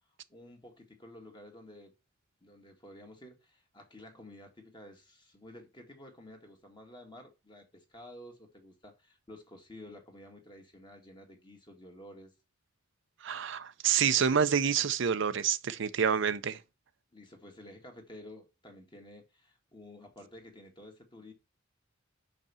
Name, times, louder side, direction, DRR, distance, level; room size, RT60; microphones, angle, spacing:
voice 1, 0.3-1.9 2.4-12.3 17.1-21.3, left 1 dB, 25° left, 1.9 m, -51 dB
voice 2, 13.2-16.6, right 7 dB, 65° right, 0.6 m, -28 dB
6.0 x 5.4 x 6.9 m
head